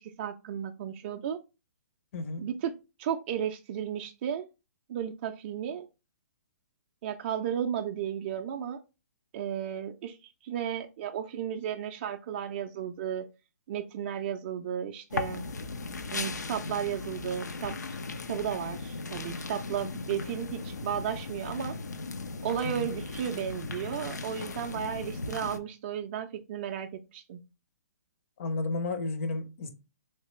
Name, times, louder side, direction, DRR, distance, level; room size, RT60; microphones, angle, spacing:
voice 1, 0.0-1.4 2.4-2.7 3.0-4.5 4.9-5.9 7.0-8.8 9.3-10.2 10.4-13.3 13.7-15.5 16.1-17.8 18.3-21.8 22.4-27.4, right 9 dB, 40° right, 0.3 m, -34 dB
voice 2, 2.1-2.5 22.6-22.9 28.4-29.7, left 3 dB, 50° left, 0.7 m, -32 dB
sound 1, 15.1-25.6, left 3 dB, 85° left, 0.5 m, -37 dB
3.2 x 2.8 x 3.1 m
hypercardioid pair, 135°, 9 cm